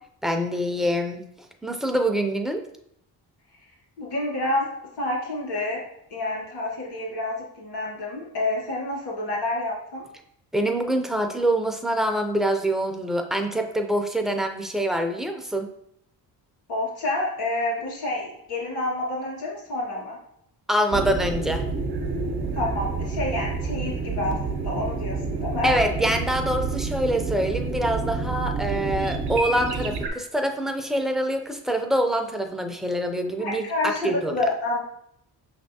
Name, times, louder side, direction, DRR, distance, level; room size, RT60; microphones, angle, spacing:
voice 1, 0.2-1.2 1.6-2.6 10.5-15.7 20.7-21.6 25.6-33.7 34.0-34.4, right 1 dB, ahead, 4 dB, 0.3 m, -25 dB
voice 2, 4.0-4.7 5.0-5.8 6.1-10.0 16.7-20.2 22.5-25.7 33.4-34.8, left 2 dB, 80° left, -3 dB, 1.9 m, -28 dB
sound 1, 20.9-30.1, right 4 dB, 75° right, 0.7 m, -29 dB
5.6 x 3.3 x 2.7 m, 0.74 s
cardioid pair, 115°, 41 cm